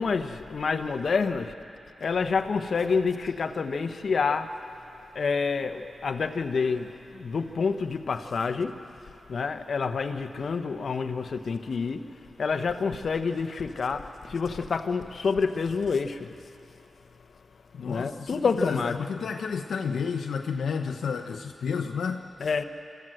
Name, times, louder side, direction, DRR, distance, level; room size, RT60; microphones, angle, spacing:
voice 1, 0.0-1.5 2.0-4.5 5.1-8.8 9.3-12.1 12.4-16.3 17.8-19.3 22.4-22.6, left 5 dB, 70° left, 8 dB, 1.0 m, -28 dB
voice 2, 17.7-22.2, left 6 dB, 90° left, 4 dB, 0.8 m, -31 dB
27.0 x 14.0 x 7.8 m, 2.7 s
cardioid pair, 70°, 0 cm